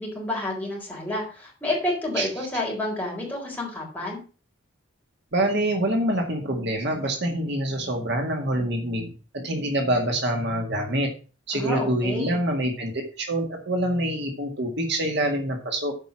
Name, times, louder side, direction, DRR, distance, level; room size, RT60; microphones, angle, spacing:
voice 1, 0.0-4.2 11.5-12.4, left 1 dB, 10° left, -3 dB, 4.2 m, -29 dB
voice 2, 2.2-2.5 5.3-11.1 11.5-12.9 13.2-15.9, right 1 dB, 55° right, 2 dB, 1.9 m, -26 dB
9.1 x 5.4 x 6.2 m, 0.35 s
head